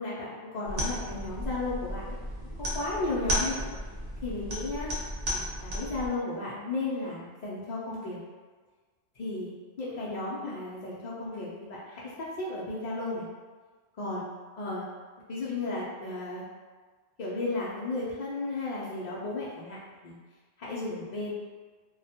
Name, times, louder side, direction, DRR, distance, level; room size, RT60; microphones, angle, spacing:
voice 1, 0.0-2.2 2.7-3.6 4.2-4.9 5.3-8.2 9.2-13.2 14.0-14.3 14.6-14.8 15.3-16.4 17.2-19.8 20.0-20.2 20.6-21.3, left 2 dB, 85° left, -7 dB, 0.3 m, -34 dB
sound 1, 0.7-6.1, equal, 50° right, 0.5 m, -34 dB
2.3 x 2.1 x 2.7 m, 1.4 s
omnidirectional pair, 1.3 m